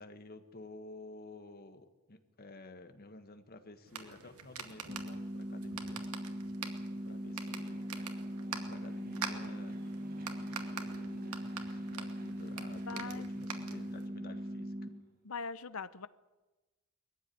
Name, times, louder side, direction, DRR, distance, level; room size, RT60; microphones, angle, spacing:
voice 1, 0.0-6.1 7.0-8.0 8.5-9.8 10.4-14.9, left 2 dB, 45° left, 8 dB, 1.7 m, -52 dB
sound 1, 3.8-14.1, right 6 dB, 90° right, 2.2 m, -46 dB
Fixed-wing aircraft airplane, 4.1-15.2, right 1 dB, 45° right, 3.3 m, -60 dB
sound 2, 4.9-14.9, equal, 30° right, 2.7 m, -40 dB
voice 2, 12.9-13.3 15.2-16.1, left 5 dB, 70° left, 14 dB, 0.9 m, -41 dB
21.0 x 14.5 x 9.5 m, 1.1 s
head